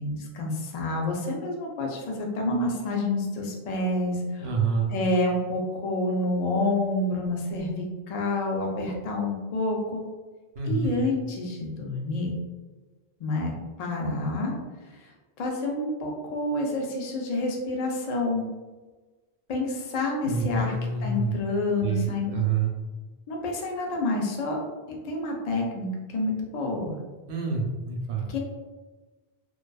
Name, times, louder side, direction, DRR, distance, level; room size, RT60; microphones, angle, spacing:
voice 1, 0.0-4.5 4.9-10.0 10.7-12.3 13.2-14.5 14.9-15.1 15.4-18.4 19.5-20.8 21.0-22.4 23.3-24.6 24.9-27.0 28.3-28.4, left 2 dB, 50° left, 0 dB, 0.5 m, -28 dB
voice 2, 4.4-4.9 10.6-11.0 20.2-21.3 21.8-22.1 22.3-22.7 27.3-28.3, right 5 dB, 80° right, 0 dB, 0.8 m, -27 dB
2.5 x 2.2 x 2.2 m, 1.3 s
omnidirectional pair, 1.0 m